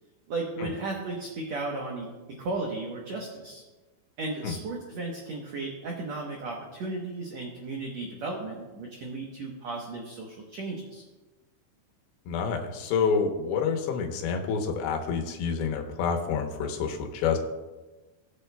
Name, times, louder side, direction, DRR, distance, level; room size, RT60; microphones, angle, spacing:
voice 1, 0.3-3.6 4.2-11.0, right 3 dB, 70° right, -1 dB, 1.6 m, -35 dB
voice 2, 12.3-17.4, left 6 dB, 80° left, 3 dB, 2.9 m, -28 dB
18.5 x 7.7 x 2.3 m, 1.2 s
omnidirectional pair, 4.5 m